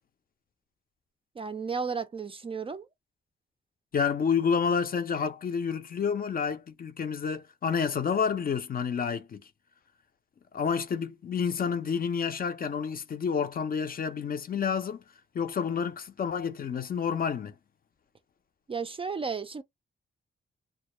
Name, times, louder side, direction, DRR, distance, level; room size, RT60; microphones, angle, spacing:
voice 1, 1.4-2.9 18.7-19.6, right 5 dB, 30° right, 0.3 m, -33 dB
voice 2, 3.9-9.5 10.5-15.0 15.3-17.6, left 6 dB, 45° left, 0.5 m, -29 dB
2.2 x 2.0 x 2.9 m
cardioid pair, 105°, 20 cm